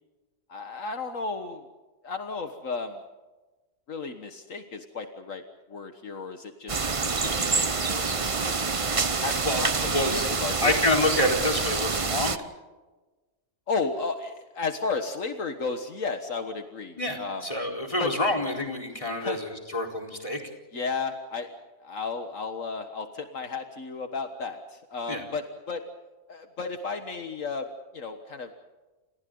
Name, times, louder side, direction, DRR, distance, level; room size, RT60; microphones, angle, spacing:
voice 1, 0.5-1.7 2.0-3.0 3.9-5.4 5.7-6.8 7.2-8.6 8.9-10.7 13.7-17.4 18.0-18.1 19.2-19.4 20.7-21.5 21.8-25.8 26.3-27.7 27.9-28.5, left 4 dB, 70° left, 6 dB, 1.8 m, -33 dB
sound 1, 6.7-12.4, right 4 dB, 30° right, 0.8 m, -27 dB
voice 2, 9.4-10.3 10.6-12.4 17.0-20.4 25.1-25.2, left 1 dB, 25° left, 2 dB, 4.3 m, -27 dB
29.5 x 28.0 x 3.9 m, 1.2 s
omnidirectional pair, 1.4 m